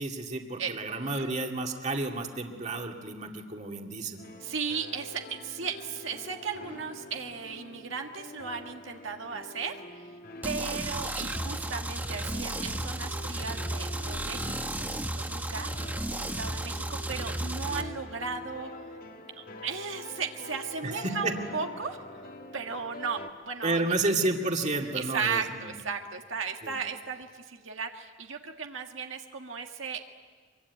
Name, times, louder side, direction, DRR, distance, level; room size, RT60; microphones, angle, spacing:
voice 1, 0.0-4.2 20.8-21.3 23.6-25.7 26.6-26.8, right 2 dB, 35° right, 3 dB, 2.1 m, -31 dB
sound 1, 4.2-23.3, left 1 dB, 50° left, 1.9 m, -46 dB
voice 2, 4.4-9.8 10.4-18.7 19.4-22.0 22.5-23.8 24.9-30.0, right 5 dB, 80° right, 3 dB, 1.6 m, -36 dB
sound 2, 10.4-17.8, right 1 dB, 10° right, 1.3 m, -34 dB
24.5 x 23.5 x 9.5 m, 1.5 s
head